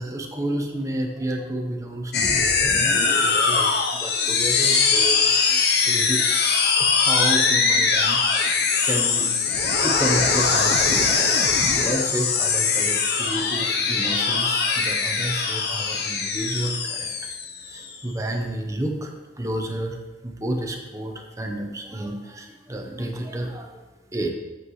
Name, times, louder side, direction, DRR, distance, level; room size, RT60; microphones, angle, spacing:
voice 1, 0.0-6.2 6.8-8.2 8.8-9.3 9.8-11.1 11.7-20.0 20.2-23.8 24.1-24.3, right 1 dB, 20° right, 2 dB, 1.0 m, -30 dB
sound 1, 2.1-17.9, left 5 dB, 65° left, 0.8 m, -21 dB
8.4 x 8.1 x 3.2 m, 1.2 s
head